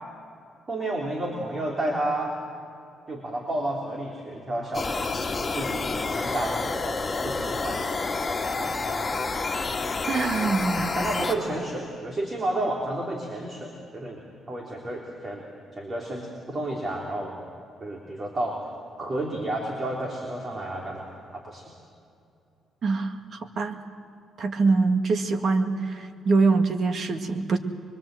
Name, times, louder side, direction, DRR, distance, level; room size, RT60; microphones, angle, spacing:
voice 1, 0.7-2.3 3.1-5.2 5.5-9.4 11.0-14.2 14.5-15.4 15.7-17.4 17.8-18.6 19.0-21.6, right 1 dB, 35° right, -1 dB, 3.5 m, -31 dB
sound 1, 4.7-11.4, left 3 dB, 25° left, 2.5 m, -29 dB
voice 2, 10.1-11.0 22.8-23.8 24.4-27.6, right 4 dB, 55° right, 6 dB, 1.9 m, -24 dB
25.0 x 22.5 x 7.7 m, 2.5 s
cardioid pair, 90°, 0 cm